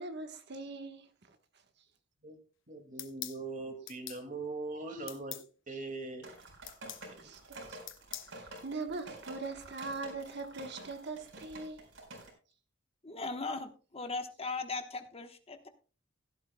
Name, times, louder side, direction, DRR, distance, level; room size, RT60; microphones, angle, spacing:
voice 1, 0.0-1.4 7.1-7.8 8.2-11.8, right 3 dB, 60° right, 1.2 m, -41 dB
voice 2, 2.7-6.3 7.1-7.2, right 3 dB, 40° right, 2.2 m, -41 dB
sound 1, 3.0-3.4 3.9-4.2 5.1-5.5 6.7-7.1 7.9-8.3, left 13 dB, 75° left, 0.9 m, -43 dB
sound 2, 6.2-12.3, right 2 dB, 75° right, 4.2 m, -49 dB
voice 3, 13.0-15.7, left 3 dB, 30° left, 1.0 m, -38 dB
16.5 x 11.0 x 2.2 m
head